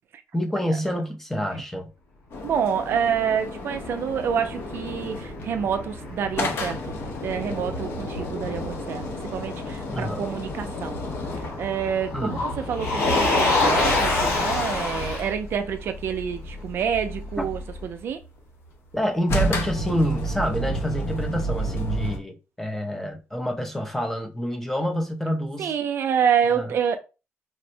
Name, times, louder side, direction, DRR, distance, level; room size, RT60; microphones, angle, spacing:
voice 1, 0.3-1.9 9.9-10.3 12.1-12.4 17.4-17.5 18.9-25.7 26.6-26.7, equal, 5° left, 0.5 m, -27 dB
sound 1, 2.3-5.5 6.4-11.6 19.3-22.2, right 1 dB, 55° left, 0.6 m, -31 dB
voice 2, 2.4-6.9 7.2-9.0 9.3-11.0 11.4-18.2 25.6-27.0, right 7 dB, 55° right, 0.3 m, -27 dB
Motor vehicle (road), 2.8-17.8, left 2 dB, 80° left, 1.6 m, -29 dB
4.3 x 2.0 x 2.6 m
cardioid pair, 170°, 5 cm